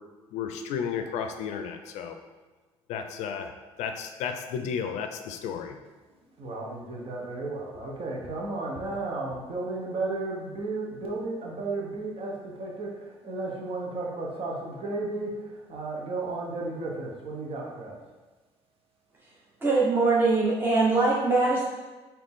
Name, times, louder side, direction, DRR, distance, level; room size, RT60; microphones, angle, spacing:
voice 1, 0.3-2.1 2.9-3.5 3.8-5.7 7.8-7.9, left 7 dB, 75° left, 6 dB, 0.5 m, -33 dB
voice 2, 6.4-18.0, right 2 dB, 55° right, -2 dB, 1.0 m, -34 dB
voice 3, 19.6-21.6, right 3 dB, 20° right, -5 dB, 0.9 m, -22 dB
4.0 x 2.8 x 3.6 m, 1.2 s
supercardioid pair, 75°, 12 cm